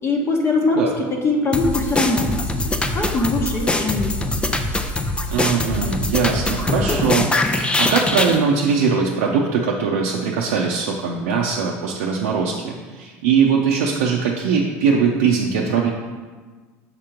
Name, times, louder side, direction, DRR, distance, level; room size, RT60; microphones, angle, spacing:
voice 1, 0.0-4.5, left 2 dB, 35° left, 1 dB, 0.9 m, -22 dB
sound 1, 1.5-8.4, left 2 dB, 15° left, 0.5 m, -22 dB
voice 2, 5.3-15.9, right 6 dB, 85° right, -2 dB, 0.5 m, -21 dB
6.5 x 3.0 x 5.0 m, 1.4 s
supercardioid pair, 95°, 8 cm